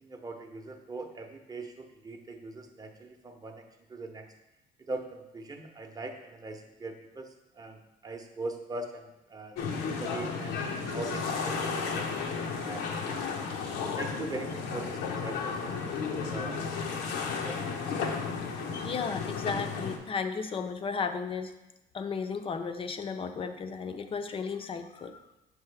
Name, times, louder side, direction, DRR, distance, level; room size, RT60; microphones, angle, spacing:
voice 1, 0.0-3.6 3.9-4.3 4.9-9.6 10.0-11.6 11.8-13.3 13.8-17.1 17.4-18.2, right 2 dB, 20° right, 4 dB, 0.7 m, -42 dB
sound 1, 9.6-20.0, left 5 dB, 85° left, 0.8 m, -33 dB
sound 2, 10.5-13.8, right 5 dB, 80° right, 0.8 m, -48 dB
voice 2, 18.8-21.5 21.9-25.2, left 5 dB, 35° left, 8 dB, 0.5 m, -34 dB
6.7 x 4.7 x 3.3 m, 0.95 s
cardioid pair, 110°, 17 cm